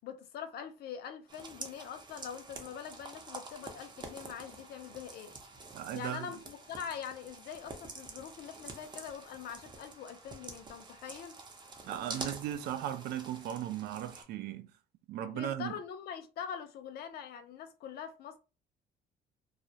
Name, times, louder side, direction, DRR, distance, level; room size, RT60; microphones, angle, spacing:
voice 1, 0.0-5.3 5.9-11.3 15.3-18.4, left 8 dB, 70° left, 0.5 m, -43 dB
sound 1, 1.3-14.2, right 3 dB, 25° right, 0.6 m, -47 dB
voice 2, 5.7-6.3 11.8-14.7 15.1-15.7, right 11 dB, 75° right, 0.4 m, -37 dB
2.4 x 2.0 x 2.7 m
cardioid pair, 110°, 17 cm